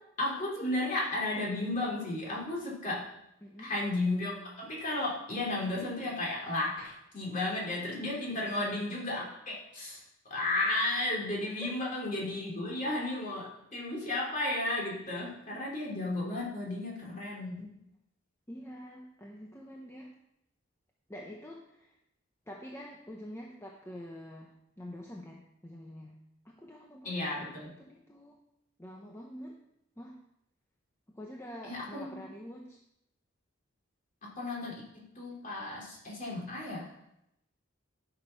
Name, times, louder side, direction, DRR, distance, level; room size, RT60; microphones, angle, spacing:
voice 1, 0.2-3.1 3.6-10.0 10.3-17.7 27.0-27.7 31.6-32.2 34.2-36.9, left 2 dB, 35° left, -3 dB, 3.0 m, -34 dB
voice 2, 8.3-8.7 11.6-11.8 18.5-20.1 21.1-21.9 22.5-24.5 24.8-26.2 26.4-28.4 28.8-29.6 30.0-30.2 31.1-32.8, equal, 10° left, -1 dB, 0.8 m, -46 dB
11.5 x 6.2 x 5.7 m, 0.82 s
head